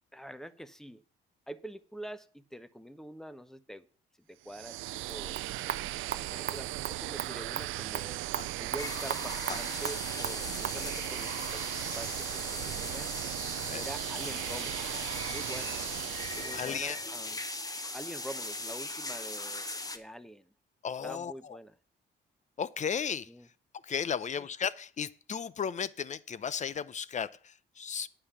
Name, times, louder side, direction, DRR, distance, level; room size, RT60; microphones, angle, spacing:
voice 1, 0.1-1.0 1.5-3.9 4.3-5.5 6.2-8.2 8.6-13.1 13.6-15.8 16.4-17.4 17.9-20.5 21.0-21.7 23.3-23.5 24.4-24.5, right 1 dB, ahead, 0.8 m, -45 dB
sound 1, 4.5-17.1, right 16 dB, 85° right, 0.4 m, -37 dB
sound 2, 5.1-10.8, right 9 dB, 55° right, 0.8 m, -40 dB
sound 3, 8.8-20.0, left 2 dB, 20° left, 1.1 m, -39 dB
voice 2, 16.5-17.0 20.8-21.6 22.6-23.3 23.8-28.1, left 7 dB, 35° left, 0.6 m, -35 dB
9.9 x 5.6 x 7.0 m
cardioid pair, 90°, 20 cm